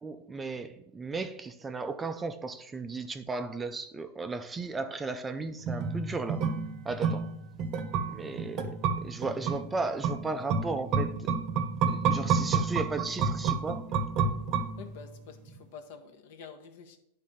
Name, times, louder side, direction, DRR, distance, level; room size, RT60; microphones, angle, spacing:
voice 1, 0.0-6.5 6.8-7.3 8.1-11.3 11.9-13.9, right 3 dB, 10° right, 0.4 m, -35 dB
sound 1, 5.6-15.2 15.5-15.6, right 5 dB, 35° right, 0.8 m, -30 dB
voice 2, 14.8-17.0, left 6 dB, 60° left, 1.0 m, -48 dB
9.6 x 3.7 x 5.5 m
supercardioid pair, 145°, 0 cm